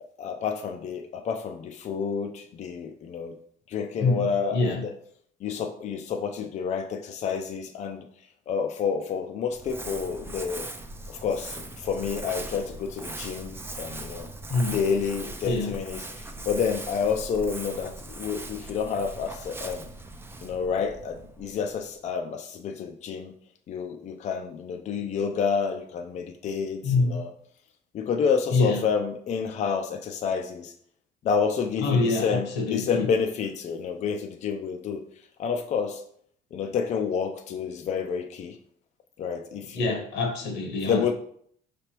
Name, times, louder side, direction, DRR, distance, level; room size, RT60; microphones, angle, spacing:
voice 1, 0.2-3.3 3.7-4.9 5.4-8.1 8.5-10.7 11.1-14.3 14.7-19.9 20.4-23.3 23.7-27.3 27.9-30.7 31.2-35.0 35.4-36.0 36.5-38.6 39.2-40.0 40.9-41.1, left 6 dB, 45° left, 5 dB, 0.4 m, -29 dB
Crumpling crinkling, 9.5-22.0, right 2 dB, 15° right, 0.4 m, -40 dB
voice 2, 26.8-27.2 28.5-28.8 31.8-33.1 39.7-41.1, left 3 dB, 85° left, 3 dB, 1.1 m, -25 dB
4.9 x 3.3 x 2.9 m, 0.63 s
cardioid pair, 110°, 17 cm